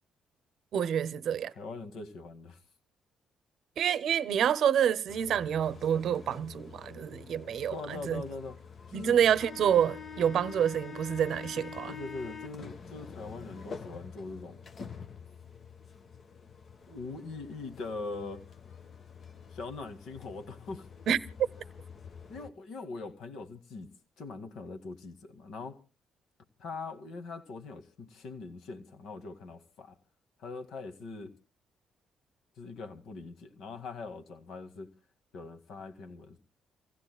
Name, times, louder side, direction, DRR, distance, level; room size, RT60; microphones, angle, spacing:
voice 1, 0.7-1.5 3.8-8.2 8.9-12.0 21.1-21.2, right 9 dB, 70° right, 0.6 m, -28 dB
voice 2, 1.6-2.6 7.7-8.6 8.9-9.2 11.9-14.7 16.9-18.4 19.5-20.9 22.3-25.8 26.6-30.0 30.4-31.3 32.6-34.9 35.3-36.4, left 3 dB, 75° left, 1.9 m, -42 dB
sound 1, 5.1-22.5, left 6 dB, 50° left, 1.1 m, -47 dB
28.5 x 16.0 x 2.3 m
cardioid pair, 90°, 0 cm